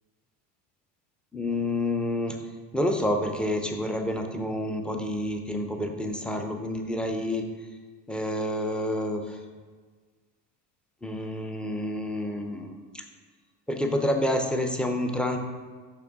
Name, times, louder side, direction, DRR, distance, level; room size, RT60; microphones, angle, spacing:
voice 1, 1.3-2.4 2.7-7.4 8.1-9.4 11.0-13.0 13.7-15.4, left 1 dB, ahead, 4 dB, 0.5 m, -28 dB
6.7 x 5.4 x 3.6 m, 1.4 s
cardioid pair, 120°, 40 cm